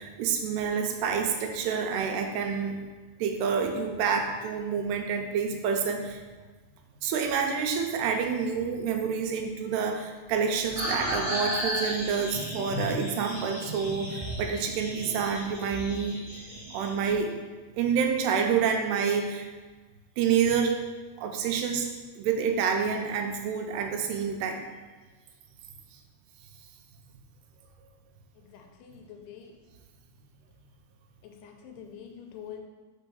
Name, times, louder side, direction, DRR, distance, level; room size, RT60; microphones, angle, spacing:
voice 1, 0.0-2.8 3.2-6.2 7.0-16.2 16.7-17.3 17.7-19.5 20.2-20.8 21.2-21.9 22.2-24.6, right 6 dB, 85° right, 4 dB, 2.8 m, -28 dB
sound 1, 10.7-17.1, equal, 15° right, 1.1 m, -34 dB
voice 2, 28.4-29.6 31.2-32.6, left 8 dB, 85° left, 4 dB, 2.7 m, -46 dB
5.7 x 4.7 x 5.4 m, 1.3 s
omnidirectional pair, 4.7 m